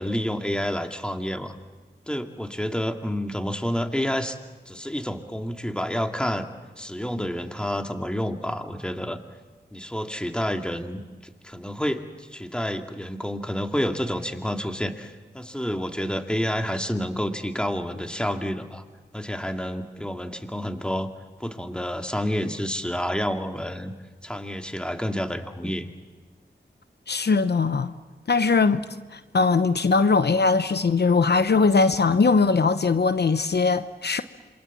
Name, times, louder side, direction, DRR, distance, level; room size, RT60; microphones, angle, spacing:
voice 1, 0.0-1.6 2.1-4.4 4.7-6.5 6.8-9.2 9.7-11.0 11.4-18.8 19.1-21.1 21.4-23.9 24.2-25.9, equal, 5° left, 2.4 m, -29 dB
voice 2, 27.1-27.9 28.3-34.2, left 4 dB, 65° left, 0.9 m, -21 dB
27.0 x 25.0 x 7.4 m
cardioid pair, 50°, 19 cm